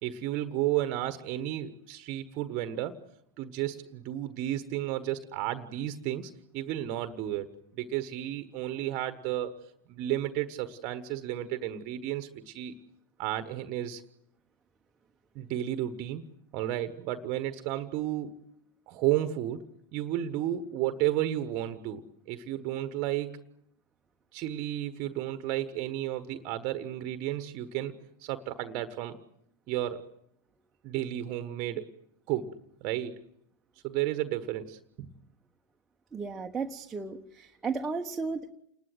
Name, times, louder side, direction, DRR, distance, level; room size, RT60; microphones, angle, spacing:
voice 1, 0.0-3.0 3.4-7.5 7.7-9.5 9.9-12.7 13.2-14.0 15.3-16.3 16.5-18.3 18.9-19.6 19.9-22.0 22.3-23.4 24.3-29.2 29.7-30.0 30.8-31.9 32.3-33.2 33.8-35.1, right 13 dB, 40° right, 11 dB, 1.4 m, -32 dB
voice 2, 36.1-38.5, right 4 dB, 15° right, 2 dB, 1.3 m, -34 dB
29.5 x 20.5 x 7.9 m, 0.76 s
figure-of-eight pair, 90°, 0 cm